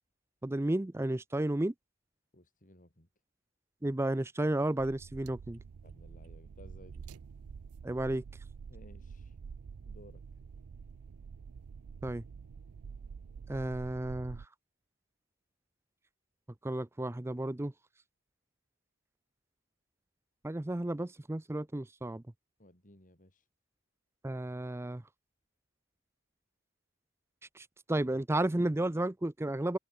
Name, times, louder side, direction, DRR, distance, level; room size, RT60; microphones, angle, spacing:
voice 1, 0.4-1.7 3.8-5.6 7.8-8.2 12.0-12.2 13.5-14.4 16.6-17.7 20.4-22.2 24.2-25.0 27.6-29.8, right 1 dB, 10° right, 0.5 m, -32 dB
voice 2, 2.3-3.1 5.8-7.1 8.7-9.4 9.8-10.2 22.6-23.5, left 1 dB, 35° left, 4.1 m, -58 dB
sound 1, 4.8-14.5, right 5 dB, 75° right, 0.4 m, -48 dB
head